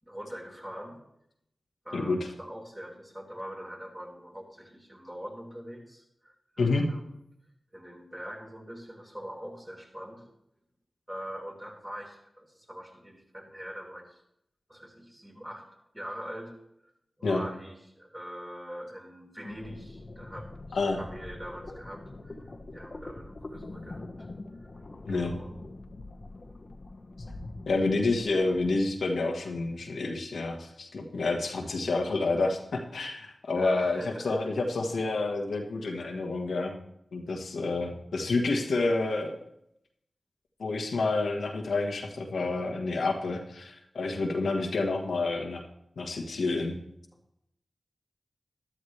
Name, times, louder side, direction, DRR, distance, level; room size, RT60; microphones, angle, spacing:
voice 1, 0.0-1.0 1.8-7.1 7.7-10.3 11.1-14.2 14.7-15.7 15.9-16.5 16.8-16.9 17.2-24.3 24.6-24.7 25.1-25.5 33.5-34.4, equal, 20° right, -1 dB, 4.1 m, -43 dB
sound 1, 19.4-28.9, left 2 dB, 50° left, 1.3 m, -44 dB
voice 2, 27.7-36.8 37.1-39.3 40.6-45.6 46.0-46.8, left 3 dB, 90° left, 2 dB, 1.5 m, -29 dB
13.0 x 11.5 x 3.3 m, 0.77 s
cardioid pair, 45°, 0 cm